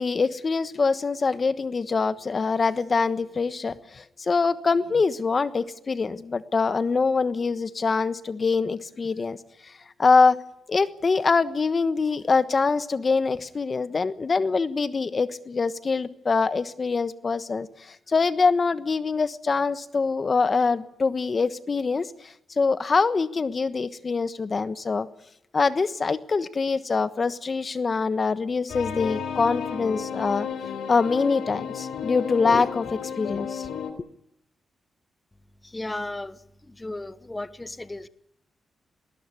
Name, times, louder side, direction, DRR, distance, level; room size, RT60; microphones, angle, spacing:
voice 1, 0.0-9.4 9.6-9.7 10.0-10.4 10.7-25.1 25.5-30.5 30.9-33.7, left 4 dB, 40° left, 13 dB, 1.2 m, -24 dB
sound 1, 28.7-33.9, left 7 dB, 90° left, 3.4 m, -32 dB
voice 2, 35.6-36.4 36.7-38.1, left 2 dB, 15° left, 14 dB, 1.2 m, -35 dB
20.0 x 20.0 x 9.9 m, 0.77 s
cardioid pair, 90°, 0 cm